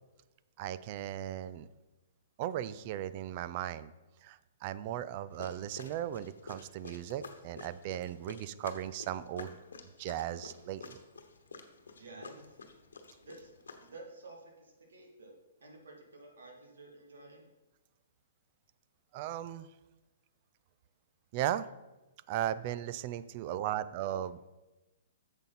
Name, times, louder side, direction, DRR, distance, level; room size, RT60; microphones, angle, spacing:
voice 1, 0.6-1.7 2.4-3.9 4.2-9.6 10.0-11.0 19.1-19.7 21.3-21.7 22.3-24.4, right 12 dB, 40° right, 16 dB, 0.4 m, -37 dB
sound 1, 5.3-14.0, left 4 dB, 90° left, 1.0 m, -49 dB
voice 2, 12.0-12.6 13.2-17.5, right 2 dB, 80° right, 0 dB, 2.2 m, -52 dB
8.1 x 7.1 x 4.1 m, 1.1 s
hypercardioid pair, 140°, 0 cm